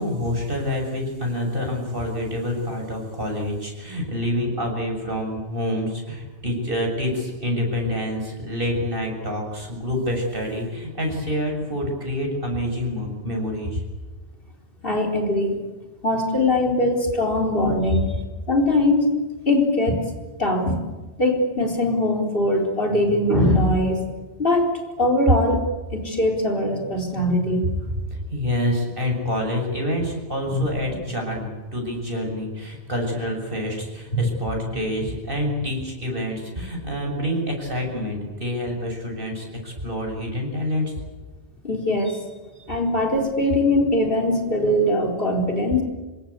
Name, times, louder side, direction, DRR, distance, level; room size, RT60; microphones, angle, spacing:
voice 1, 0.0-13.8 27.7-27.8 28.3-40.9, left 1 dB, 50° right, 1 dB, 7.0 m, -27 dB
voice 2, 14.8-15.6 16.0-18.1 18.5-19.2 19.5-20.0 20.4-20.8 21.2-24.0 24.4-24.7 25.0-27.9 30.4-31.0 34.1-34.2 41.6-42.2 42.7-45.8, left 1 dB, 50° left, 2 dB, 4.4 m, -21 dB
26.0 x 23.5 x 8.3 m, 1.2 s
omnidirectional pair, 1.2 m